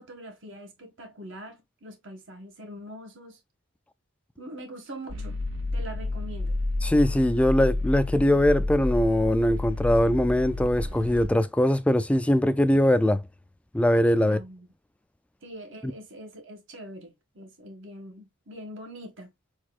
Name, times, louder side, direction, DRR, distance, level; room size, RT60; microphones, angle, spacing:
voice 1, 0.0-3.4 4.4-5.4 5.7-6.5 14.2-14.7 15.4-19.3, equal, 60° right, 1.8 m, -43 dB
sound 1, 5.1-11.3, left 2 dB, 80° right, 2.2 m, -30 dB
voice 2, 6.8-13.2 13.7-14.4 15.8-15.9, left 1 dB, 5° left, 0.3 m, -22 dB
4.6 x 4.5 x 2.4 m
head